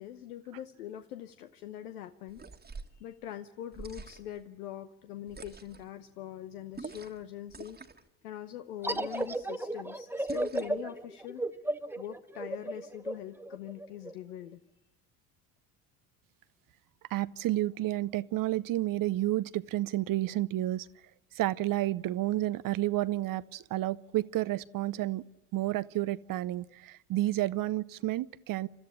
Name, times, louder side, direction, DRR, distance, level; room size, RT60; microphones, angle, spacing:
voice 1, 0.0-2.4 3.0-7.8 8.2-11.4 12.0-14.6, left 11 dB, 85° left, 9 dB, 1.0 m, -43 dB
sound 1, 2.3-3.0 3.7-4.4 5.3-5.9 6.7-7.2 7.5-8.1 8.9-9.4 10.3-10.8, right 4 dB, 20° right, 1.7 m, -46 dB
sound 2, 8.8-14.1, right 1 dB, 5° right, 1.1 m, -34 dB
voice 2, 17.1-20.9 21.3-25.2 25.5-28.7, right 15 dB, 45° right, 16 dB, 0.7 m, -30 dB
30.0 x 13.0 x 9.9 m, 0.96 s
hypercardioid pair, 65°, 45 cm